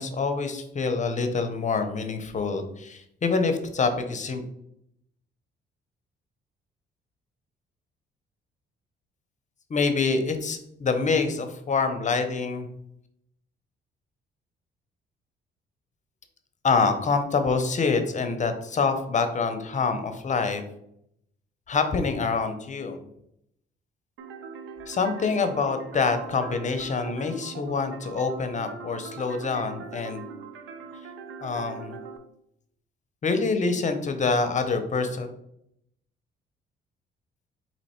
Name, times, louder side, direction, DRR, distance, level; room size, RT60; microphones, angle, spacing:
voice 1, 0.0-4.4 9.7-12.7 16.6-20.6 21.7-23.0 24.9-30.2 31.4-32.0 33.2-35.3, left 4 dB, 40° left, 8 dB, 0.7 m, -26 dB
sound 1, 24.2-32.2, right 6 dB, 85° right, 0.5 m, -42 dB
4.2 x 2.9 x 4.3 m, 0.77 s
cardioid pair, 90°, 20 cm